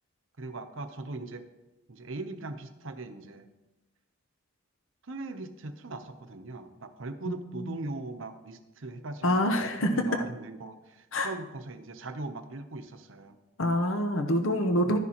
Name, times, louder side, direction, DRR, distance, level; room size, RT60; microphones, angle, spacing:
voice 1, 0.4-1.4 1.9-3.5 5.0-13.4, right 2 dB, 60° right, 8 dB, 0.8 m, -40 dB
voice 2, 7.3-7.8 9.2-9.9 11.1-11.3 13.6-15.0, equal, 65° left, 6 dB, 0.8 m, -26 dB
11.5 x 10.5 x 3.0 m, 1.0 s
head